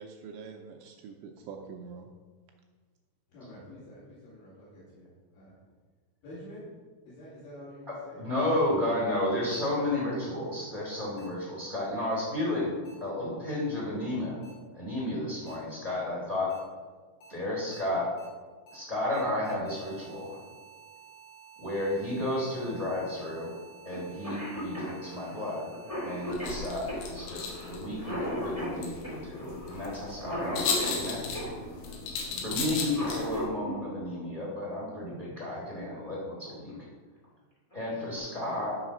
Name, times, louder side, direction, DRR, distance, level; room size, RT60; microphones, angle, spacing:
voice 1, 0.0-2.1, right 5 dB, 80° right, 2 dB, 2.7 m, -44 dB
voice 2, 3.3-5.5 6.2-6.7 7.1-9.3, equal, 70° left, -12 dB, 4.8 m, -48 dB
voice 3, 7.9-14.4 14.7-16.6 17.3-18.1 18.7-20.4 21.6-23.5 23.8-25.7 26.0-31.5 32.4-36.9 37.7-38.8, left 1 dB, 25° right, -5 dB, 1.1 m, -32 dB
sound 1, 9.5-9.6 11.2-11.3 12.8-12.9 14.4-14.5 15.5-15.6 16.5-16.6 17.2-17.3 17.7-17.8 18.2-18.3 18.7-18.8 19.1-26.3, right 6 dB, 50° left, 1.9 m, -52 dB
Cough, 23.9-24.0 24.2-31.5 32.7-33.7 35.3-35.4 36.5-36.8 37.2-37.3 37.7-38.2, equal, 25° left, 0.6 m, -37 dB
sound 2, 26.3-33.5, left 4 dB, 85° left, 3.9 m, -36 dB
12.0 x 4.0 x 6.0 m, 1.4 s
omnidirectional pair, 5.5 m